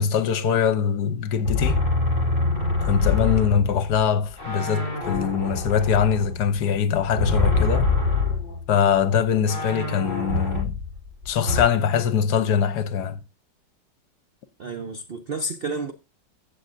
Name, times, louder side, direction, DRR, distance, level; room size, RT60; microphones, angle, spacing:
voice 1, 0.0-1.8 2.8-7.9 8.7-10.8 11.3-13.2, left 7 dB, 70° left, 1.3 m, -22 dB
sound 1, 1.4-4.1 4.4-8.6 9.0-9.1 9.5-11.6, left 3 dB, 40° right, 6.2 m, -25 dB
voice 2, 14.6-15.9, right 2 dB, 60° right, 0.6 m, -30 dB
15.5 x 6.7 x 2.6 m
omnidirectional pair, 1.9 m